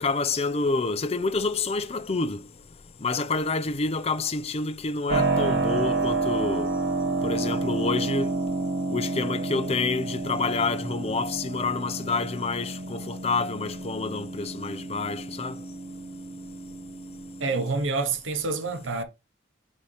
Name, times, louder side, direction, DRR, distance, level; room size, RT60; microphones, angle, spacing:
voice 1, 0.0-2.4 3.0-6.7 7.2-8.3 8.9-15.6, left 3 dB, 30° left, 0.5 m, -28 dB
Keyboard (musical), 5.1-17.8, right 3 dB, 70° right, 1.3 m, -30 dB
voice 2, 17.4-19.0, right 3 dB, 85° right, 1.0 m, -27 dB
4.8 x 4.2 x 5.6 m
head